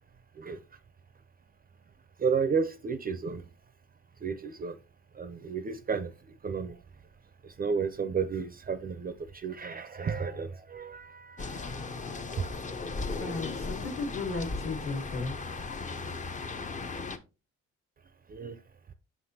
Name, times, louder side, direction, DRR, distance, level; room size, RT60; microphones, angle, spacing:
voice 1, 2.2-3.4 4.2-4.8 5.1-6.8 7.4-11.8 12.4-12.5 18.3-18.6, right 5 dB, 30° right, 0.4 m, -32 dB
sound 1, 11.4-17.2, left 3 dB, 25° left, 0.5 m, -37 dB
voice 2, 13.0-15.4, left 3 dB, 45° left, 1.4 m, -35 dB
5.9 x 5.9 x 2.7 m
cardioid pair, 90°, 30 cm